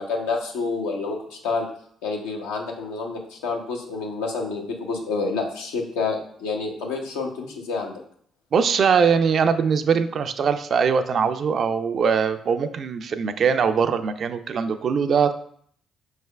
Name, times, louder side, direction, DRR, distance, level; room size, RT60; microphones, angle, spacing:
voice 1, 0.0-1.7 2.0-8.0, left 4 dB, 85° left, 1 dB, 0.6 m, -28 dB
voice 2, 8.5-15.3, right 6 dB, 60° right, 11 dB, 0.3 m, -21 dB
5.4 x 3.2 x 2.2 m, 0.63 s
hypercardioid pair, 50°, 0 cm